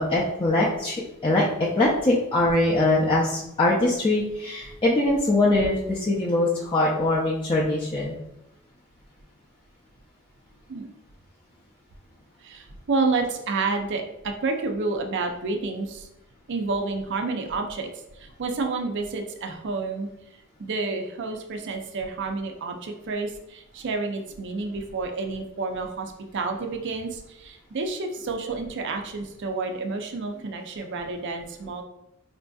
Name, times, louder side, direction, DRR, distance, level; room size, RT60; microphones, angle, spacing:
voice 1, 0.0-8.2, left 2 dB, 25° left, -6 dB, 0.4 m, -22 dB
voice 2, 12.4-16.1 16.5-20.1 20.6-31.8, right 3 dB, 50° right, 4 dB, 0.4 m, -29 dB
4.1 x 2.6 x 2.3 m, 0.88 s
head